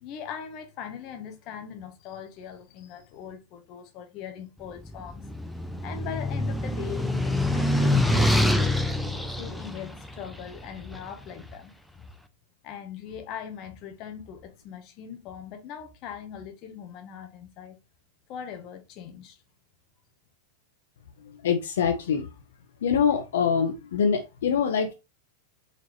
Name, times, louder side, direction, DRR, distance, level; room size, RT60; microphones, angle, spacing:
voice 1, 0.0-5.3 5.8-8.7 9.4-12.1 12.6-17.8 18.3-19.4, left 8 dB, 45° left, 1.1 m, -40 dB
sound 1, 4.8-11.1, left 1 dB, ahead, 0.5 m, -25 dB
voice 2, 21.4-22.3 22.8-24.9, left 7 dB, 80° left, 0.6 m, -24 dB
4.2 x 3.0 x 3.0 m
hypercardioid pair, 120°, 0 cm